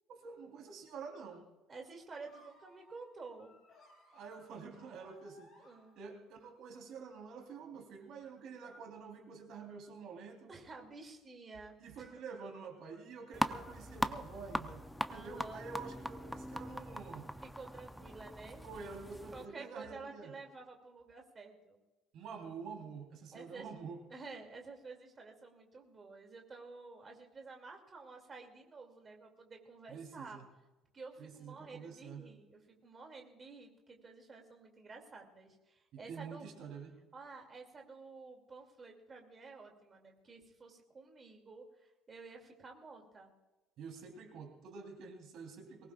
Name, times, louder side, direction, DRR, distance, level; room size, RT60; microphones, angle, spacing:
voice 1, 0.1-1.5 4.1-5.5 6.0-10.5 11.8-17.3 18.6-20.3 22.1-24.0 29.9-30.5 31.2-32.2 35.9-37.0 43.8-45.9, right 5 dB, 50° right, 2 dB, 3.7 m, -48 dB
voice 2, 1.7-3.5 5.6-6.0 10.5-12.1 15.1-15.7 17.4-18.7 19.3-21.8 23.3-23.7 24.1-30.4 30.9-36.5 37.1-43.3, right 4 dB, 20° right, 2 dB, 2.7 m, -51 dB
sound 1, 2.2-6.4, equal, 30° left, 5.2 m, -64 dB
sound 2, 13.3-19.5, equal, ahead, 0.5 m, -40 dB
23.0 x 19.5 x 2.5 m, 1.1 s
cardioid pair, 175°, 0 cm